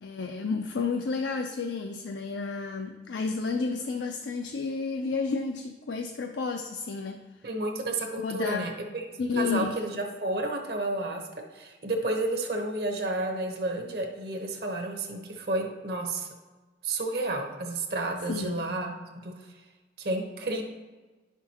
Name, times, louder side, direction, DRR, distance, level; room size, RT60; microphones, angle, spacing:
voice 1, 0.0-7.2 8.2-8.6 9.2-9.7 18.3-18.6, left 4 dB, 80° left, 4 dB, 0.5 m, -31 dB
voice 2, 7.4-9.1 9.3-11.2 11.5-16.3 16.8-19.5 20.0-20.6, right 2 dB, 60° right, 2 dB, 1.0 m, -31 dB
10.5 x 5.9 x 2.9 m, 1.3 s
head